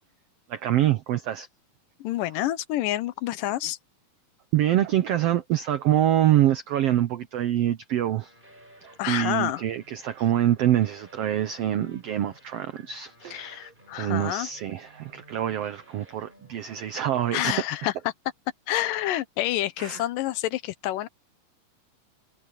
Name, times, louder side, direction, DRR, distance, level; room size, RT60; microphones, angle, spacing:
voice 1, 0.5-1.5 4.5-8.3 8.8-17.6 19.8-20.0, right 12 dB, 90° right, 1.3 m, -25 dB
voice 2, 2.0-3.8 9.0-9.6 13.3-14.5 17.3-17.9 18.7-21.1, left 14 dB, 80° left, 2.5 m, -28 dB
sound 1, 8.2-16.8, right 1 dB, 15° right, 7.7 m, -55 dB
omnidirectional pair, 3.9 m